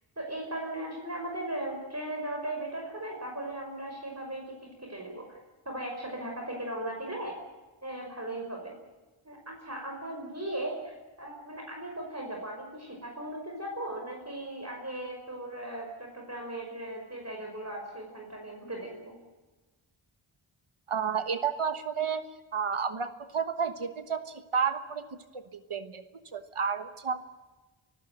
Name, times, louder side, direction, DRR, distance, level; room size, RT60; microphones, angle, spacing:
voice 1, 0.2-5.4 5.7-7.4 7.8-8.8 9.2-19.2, right 1 dB, 30° right, 1 dB, 5.5 m, -37 dB
voice 2, 20.9-25.1 25.3-26.0 26.3-27.2, right 6 dB, 85° right, 10 dB, 1.4 m, -31 dB
25.0 x 15.5 x 9.1 m, 1.2 s
wide cardioid pair, 45°, 49 cm